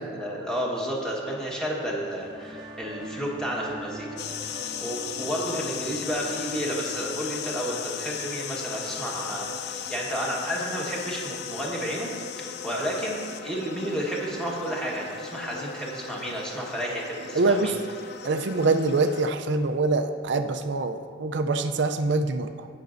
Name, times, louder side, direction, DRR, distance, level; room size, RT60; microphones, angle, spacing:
voice 1, 0.0-4.1 4.3-4.5 4.8-12.1 12.6-17.8, equal, 5° left, -4 dB, 1.4 m, -31 dB
sound 1, 2.1-9.5, equal, 20° right, 0.8 m, -44 dB
sound 2, 4.2-19.3, left 7 dB, 55° left, 0.4 m, -37 dB
voice 2, 17.3-17.8 18.2-22.7, right 3 dB, 60° right, 8 dB, 0.5 m, -24 dB
17.0 x 6.0 x 2.6 m, 2.1 s
head